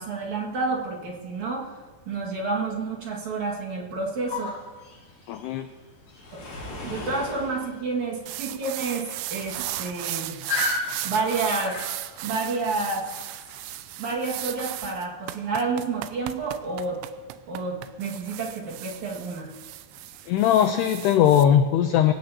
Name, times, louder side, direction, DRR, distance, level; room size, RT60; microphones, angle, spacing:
voice 1, 0.0-1.8 2.1-4.5 6.3-6.4 6.8-10.4 11.0-11.8 12.2-13.0 14.0-17.0 17.5-19.5, right 3 dB, 50° right, -3 dB, 2.8 m, -29 dB
sound 1, 4.3-12.3, left 3 dB, 40° left, 8.0 m, -36 dB
voice 2, 5.3-5.7 20.3-22.1, left 9 dB, 85° left, 7 dB, 2.4 m, -20 dB
Waves surf, 6.1-7.6, left 1 dB, 55° left, 7.1 m, -37 dB
sound 2, 8.3-21.4, right 14 dB, 85° right, 3.2 m, -36 dB
24.0 x 17.0 x 2.9 m, 1.4 s
omnidirectional pair, 5.5 m